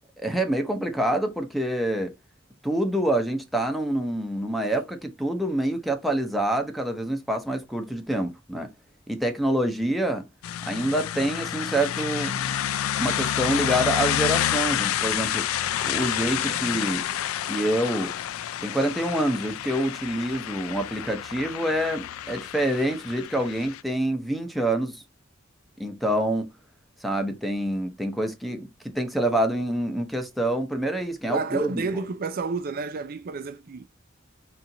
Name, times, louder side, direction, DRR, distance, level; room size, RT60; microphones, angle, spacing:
voice 1, 0.2-2.1 2.6-8.7 9.1-10.3 10.7-12.5 13.0-15.5 15.8-17.1 17.5-18.1 18.6-25.0 25.8-26.5 27.0-31.8, right 1 dB, ahead, 0.7 m, -26 dB
sound 1, 10.4-23.8, left 11 dB, 85° left, 0.3 m, -29 dB
Squeak, 11.8-16.8, right 6 dB, 80° right, 1.2 m, -43 dB
voice 2, 31.3-33.8, right 4 dB, 45° right, 0.4 m, -30 dB
4.3 x 2.5 x 3.7 m
head